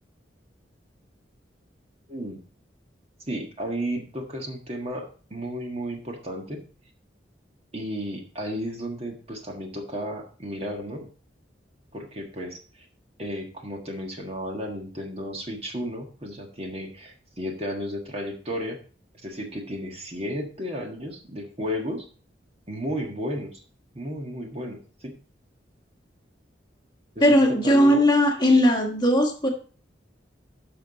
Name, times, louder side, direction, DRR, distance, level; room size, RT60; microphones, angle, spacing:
voice 1, 2.1-2.4 3.2-6.6 7.7-11.1 11.9-12.9 13.2-18.8 19.2-22.1 22.7-23.6 23.9-25.1 27.1-28.0, equal, 35° right, 2 dB, 1.6 m, -33 dB
voice 2, 27.2-29.5, equal, 25° left, 2 dB, 1.4 m, -18 dB
10.5 x 6.0 x 4.0 m, 0.39 s
head